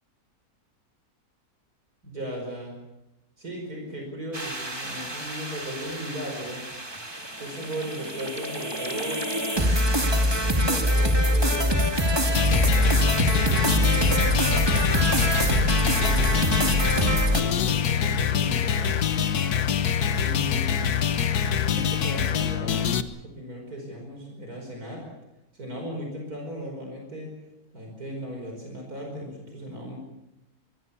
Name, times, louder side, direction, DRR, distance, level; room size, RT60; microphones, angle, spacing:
voice 1, 2.0-2.7 3.4-6.6 7.4-9.3 10.1-14.4 15.0-16.5 17.1-19.0 20.1-21.1 21.6-22.9 23.2-25.1 25.5-27.4 27.7-30.0, equal, 70° right, 1 dB, 5.5 m, -37 dB
sound 1, 4.3-17.4, equal, 15° right, 2.2 m, -24 dB
sound 2, 12.3-23.0, left 8 dB, 80° left, 1.6 m, -25 dB
25.0 x 21.5 x 7.1 m, 0.93 s
omnidirectional pair, 1.6 m